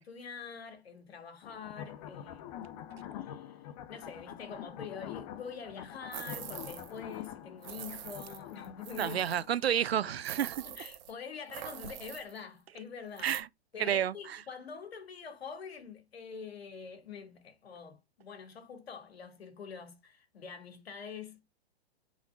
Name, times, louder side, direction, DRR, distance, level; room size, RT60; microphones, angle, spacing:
voice 1, 0.0-2.9 3.2-3.6 3.9-9.2 10.6-13.3 13.7-21.4, left 6 dB, 70° left, 2.8 m, -45 dB
sound 1, 1.4-10.3, left 10 dB, 35° left, 1.0 m, -46 dB
sound 2, 6.1-7.0 7.2-7.3 7.6-9.4 10.2-11.1 11.5-12.4 13.2-13.4, right 12 dB, 45° right, 1.3 m, -44 dB
voice 2, 9.0-10.6 13.2-13.5 13.8-14.4, right 9 dB, 70° right, 0.7 m, -30 dB
12.5 x 5.1 x 2.6 m
figure-of-eight pair, 120°, 32 cm